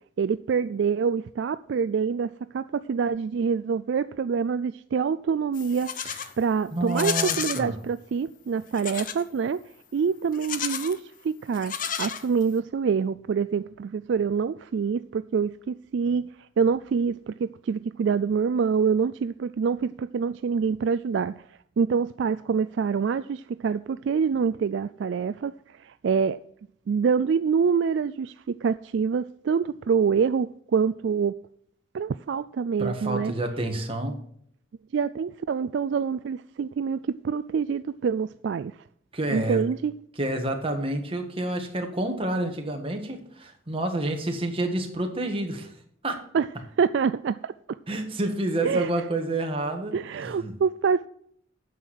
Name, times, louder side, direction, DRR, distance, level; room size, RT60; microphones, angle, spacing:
voice 1, 0.2-5.9 6.4-9.6 9.9-16.3 16.6-21.4 21.8-26.4 26.9-31.3 31.9-33.3 34.9-38.8 39.3-39.9 46.3-46.5 46.8-47.8 48.6-48.9 49.9-51.1, right 6 dB, 60° right, 0.3 m, -26 dB
Livestock farm animals working animals, 5.5-6.3 6.9-7.7 8.7-9.2 10.3-11.0 11.5-12.6, left 8 dB, 40° left, 0.7 m, -32 dB
voice 2, 6.7-7.7 32.8-34.2 39.1-39.6 40.2-45.7 46.0-46.2 47.9-49.9 50.2-50.5, right 1 dB, 25° right, 1.7 m, -29 dB
9.2 x 6.3 x 7.7 m
head